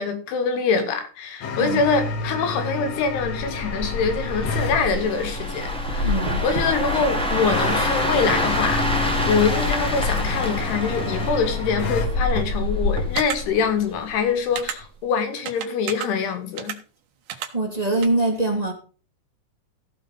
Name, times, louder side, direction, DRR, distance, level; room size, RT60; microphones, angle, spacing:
voice 1, 0.0-16.8, left 5 dB, 75° left, 4.1 m, -24 dB
sound 1, 1.4-4.8 7.5-12.1, left 3 dB, 60° left, 1.8 m, -30 dB
sound 2, 3.1-14.2 14.5-14.8, left 1 dB, ahead, 1.4 m, -26 dB
voice 2, 6.0-6.4 17.5-18.7, right 2 dB, 30° right, 0.6 m, -23 dB
sound 3, 13.2-13.4 14.6-14.8 15.5-16.1 16.6-16.8 17.3-17.5 18.0-18.1, right 10 dB, 70° right, 3.2 m, -30 dB
15.5 x 6.1 x 5.5 m
omnidirectional pair, 4.7 m